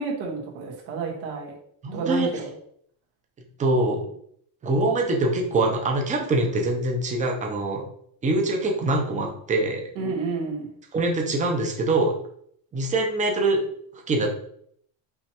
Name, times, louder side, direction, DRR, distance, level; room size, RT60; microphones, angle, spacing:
voice 1, 0.0-1.5 1.9-2.5 10.0-10.7, right 4 dB, 85° right, -1 dB, 1.7 m, -30 dB
voice 2, 1.8-2.3 3.6-4.1 4.6-7.8 8.2-9.8 10.9-12.1 12.7-13.6 14.1-14.3, right 2 dB, 15° right, 1 dB, 0.6 m, -23 dB
5.5 x 3.0 x 2.9 m, 0.66 s
cardioid pair, 155°, 47 cm